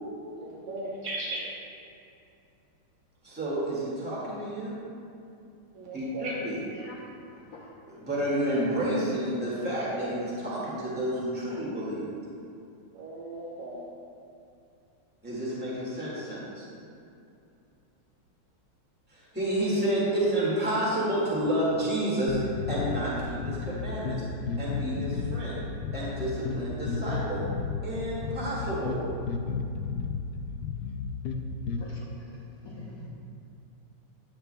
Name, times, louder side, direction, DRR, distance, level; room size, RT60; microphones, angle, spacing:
voice 1, 0.3-1.5 5.7-6.3 12.9-13.8, right 2 dB, 80° right, -5 dB, 2.3 m, -37 dB
voice 2, 3.2-4.8 5.9-6.5 7.9-12.1 15.2-16.6 19.1-24.2 24.6-25.6 25.9-27.4 27.8-29.0, right 1 dB, 5° right, -7 dB, 1.7 m, -30 dB
voice 3, 7.3-7.7 31.8-32.3 32.6-33.1, left 2 dB, 55° left, -8 dB, 1.4 m, -45 dB
sound 1, 22.3-31.8, left 5 dB, 80° left, 0.8 m, -33 dB
10.5 x 8.7 x 2.2 m, 2.6 s
omnidirectional pair, 2.3 m